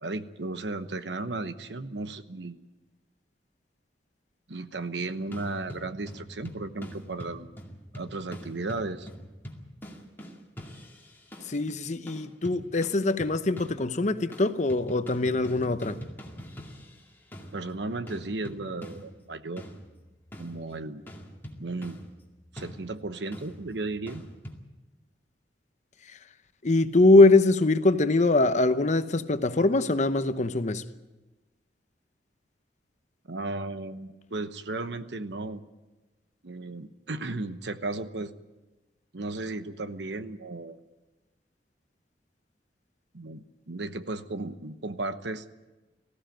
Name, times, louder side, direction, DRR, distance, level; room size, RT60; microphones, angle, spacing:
voice 1, 0.0-2.6 4.5-7.6 7.9-9.1 17.5-19.7 20.4-21.0 21.6-22.0 22.5-24.2 33.3-35.6 36.4-38.3 39.1-40.8 43.1-45.4, right 2 dB, 75° right, 1.0 m, -35 dB
sound 1, 5.3-11.7 12.1-14.0 14.3-24.6, equal, 10° left, 2.3 m, -45 dB
voice 2, 11.4-16.0 26.1-26.2 26.6-30.8, left 2 dB, 40° left, 0.8 m, -22 dB
19.5 x 15.5 x 9.0 m
head